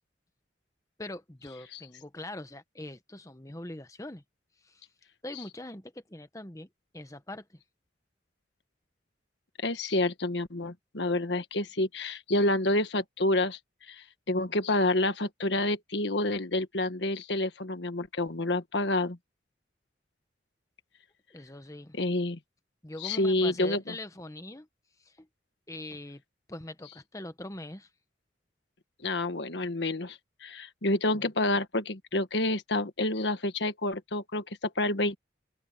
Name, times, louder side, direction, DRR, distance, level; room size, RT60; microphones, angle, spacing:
voice 1, 1.0-4.2 4.6-4.9 5.2-6.7 6.9-7.6 21.3-22.0 22.8-24.7 25.0-25.3 25.7-26.2 26.5-27.9, left 1 dB, 20° left, 1.2 m, -42 dB
voice 2, 9.6-13.6 13.9-19.2 21.9-22.4 23.0-23.9 29.0-35.2, left 2 dB, 75° left, 1.5 m, -28 dB
open air
head